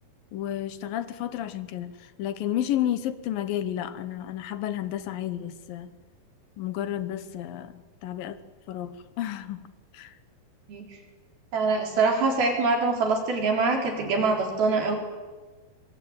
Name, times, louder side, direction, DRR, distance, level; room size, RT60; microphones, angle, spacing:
voice 1, 0.3-5.9 6.6-8.4 8.7-9.7 9.9-10.1, left 11 dB, 70° left, 14 dB, 2.6 m, -31 dB
voice 2, 11.5-15.0, right 3 dB, 65° right, 3 dB, 6.0 m, -24 dB
26.0 x 22.5 x 8.9 m, 1.3 s
omnidirectional pair, 4.7 m